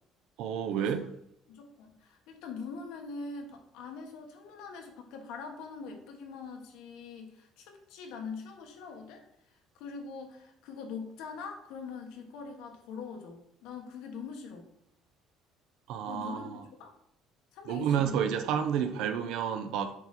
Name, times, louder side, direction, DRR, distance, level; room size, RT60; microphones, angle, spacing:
voice 1, 0.4-1.0 15.9-16.5 17.7-19.9, right 8 dB, 70° right, 0.6 m, -30 dB
voice 2, 1.5-14.7 16.1-16.9 17.5-18.2, left 5 dB, 80° left, 1.4 m, -43 dB
7.2 x 4.0 x 4.2 m
cardioid pair, 170°, 0 cm